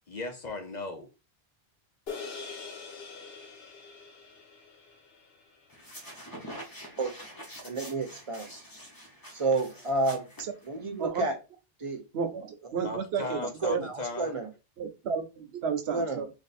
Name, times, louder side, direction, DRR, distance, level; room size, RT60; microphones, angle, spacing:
voice 1, 0.1-1.1 12.8-14.3, left 2 dB, 50° left, 0.7 m, -37 dB
sound 1, 2.1-6.6, left 5 dB, 70° left, 1.0 m, -44 dB
sound 2, 5.7-11.1, equal, 20° left, 0.9 m, -46 dB
voice 2, 7.6-8.5 9.3-10.2 10.6-11.3 11.8-12.0 13.2-13.3 13.6-14.5 15.9-16.2, right 3 dB, 35° right, 0.7 m, -30 dB
voice 3, 12.1-13.5 13.7-13.8 14.8-16.3, right 6 dB, 75° right, 0.9 m, -32 dB
3.3 x 2.6 x 4.1 m
omnidirectional pair, 1.1 m